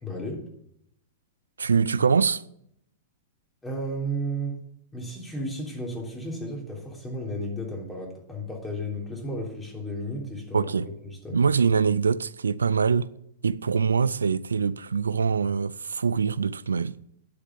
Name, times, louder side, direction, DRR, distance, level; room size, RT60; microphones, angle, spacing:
voice 1, 0.0-0.4 3.6-4.6 4.9-11.4, right 1 dB, 10° left, 3.4 m, -33 dB
voice 2, 1.6-2.4 10.5-10.9 11.3-13.1 13.4-16.9, right 5 dB, 75° right, 0.4 m, -24 dB
9.8 x 7.0 x 7.0 m
figure-of-eight pair, 100°, 0 cm